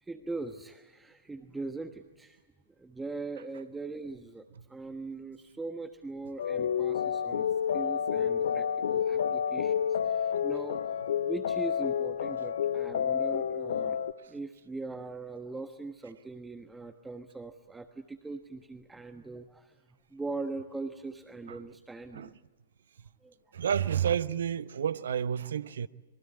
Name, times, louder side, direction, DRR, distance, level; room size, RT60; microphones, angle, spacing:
voice 1, 0.0-2.4 2.8-9.7 10.0-14.0 14.3-19.8 20.1-22.3 23.2-23.3, right 3 dB, 10° right, 1.3 m, -41 dB
sound 1, 6.4-14.1, left 8 dB, 65° left, 1.0 m, -29 dB
voice 2, 23.5-25.9, right 8 dB, 65° right, 0.9 m, -30 dB
27.0 x 23.0 x 8.5 m
figure-of-eight pair, 110°, 0 cm